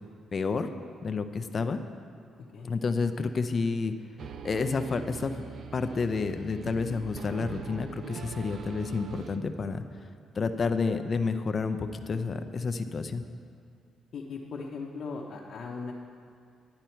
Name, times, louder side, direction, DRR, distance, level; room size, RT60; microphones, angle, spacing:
voice 1, 0.3-0.7 1.0-1.8 2.6-3.9 4.4-5.4 5.7-9.8 10.3-13.2, left 4 dB, 40° left, 8 dB, 0.6 m, -30 dB
sound 1, 4.2-9.4, right 6 dB, 60° right, 0.6 m, -42 dB
voice 2, 14.1-15.9, left 4 dB, 55° left, -2 dB, 0.9 m, -38 dB
10.5 x 10.0 x 4.5 m, 2.3 s
cardioid pair, 110°, 0 cm